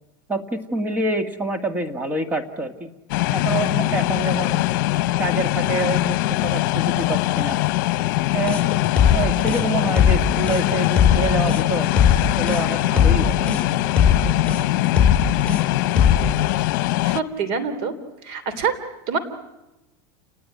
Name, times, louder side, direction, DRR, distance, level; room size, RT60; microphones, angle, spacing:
voice 1, 0.3-2.9 3.3-4.6 5.2-6.2 6.4-7.6 8.3-8.6 9.1-11.9 12.4-13.5, right 2 dB, 15° right, 8 dB, 2.0 m, -26 dB
sound 1, 3.1-17.2, left 17 dB, 65° left, 1.0 m, -22 dB
sound 2, 8.5-16.3, left 7 dB, 10° left, 6.0 m, -19 dB
voice 2, 17.0-17.9 18.2-18.7 19.1-19.2, right 6 dB, 55° right, 12 dB, 3.4 m, -25 dB
29.5 x 19.5 x 9.7 m, 0.98 s
supercardioid pair, 145°, 11 cm